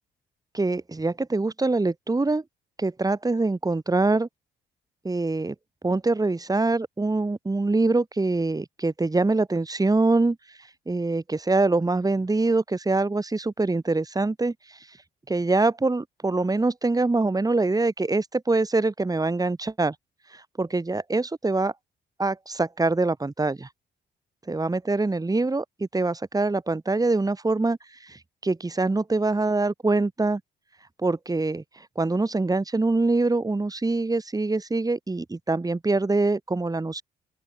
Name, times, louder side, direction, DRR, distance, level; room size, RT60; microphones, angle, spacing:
voice 1, 0.5-2.4 2.8-4.3 5.0-5.6 5.8-10.4 10.9-14.5 15.3-19.9 20.3-21.7 22.2-23.7 24.5-27.8 28.0-30.4 31.0-31.6 32.0-37.0, right 3 dB, 20° right, 3.6 m, -24 dB
open air
cardioid pair, 90°, 20 cm